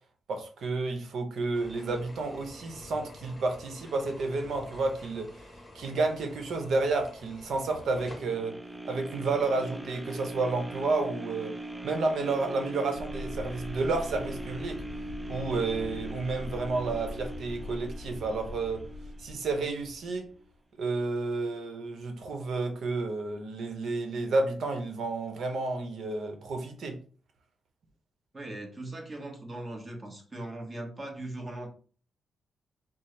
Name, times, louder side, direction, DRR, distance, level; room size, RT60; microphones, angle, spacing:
voice 1, 0.3-5.3 5.7-8.6 8.8-11.5 11.8-14.8 15.3-18.9 19.2-20.3 20.8-27.0, right 3 dB, 70° right, 0.9 m, -31 dB
sound 1, 1.5-8.2, left 1 dB, 15° left, 0.9 m, -48 dB
sound 2, 7.8-19.9 20.4-20.5, right 1 dB, 10° right, 0.4 m, -42 dB
sound 3, 12.9-20.5, left 2 dB, 50° left, 0.5 m, -42 dB
voice 2, 28.3-31.7, right 1 dB, 25° right, 1.1 m, -39 dB
4.3 x 2.0 x 3.3 m
cardioid pair, 100°, 0 cm